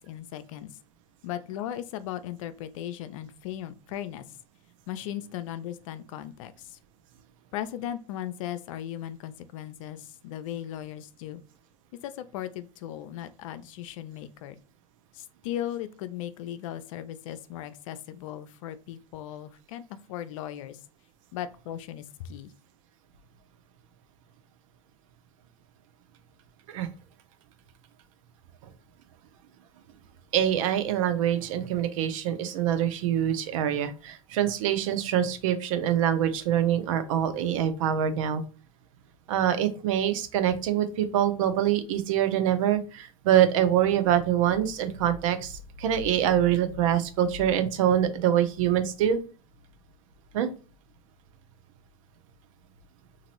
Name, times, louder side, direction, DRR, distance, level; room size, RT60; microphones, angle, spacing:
voice 1, 0.1-0.7 1.2-4.2 4.9-6.8 7.5-11.4 12.0-14.6 15.1-20.8 21.3-22.5, left 11 dB, 65° left, 12 dB, 0.4 m, -37 dB
voice 2, 30.3-38.4 39.3-49.2 50.3-50.5, right 10 dB, 65° right, 10 dB, 0.6 m, -25 dB
2.9 x 2.5 x 2.9 m, 0.35 s
hypercardioid pair, 100°, 18 cm